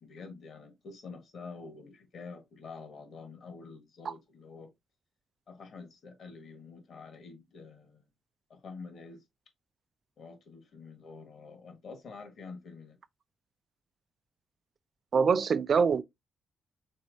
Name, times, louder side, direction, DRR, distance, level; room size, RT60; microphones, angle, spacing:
voice 1, 0.0-4.7 5.5-8.0 8.5-9.2 10.2-12.9, left 4 dB, 50° left, 1.6 m, -47 dB
voice 2, 15.1-16.0, right 6 dB, 40° right, 0.4 m, -24 dB
4.5 x 4.1 x 2.6 m
cardioid pair, 155°, 0 cm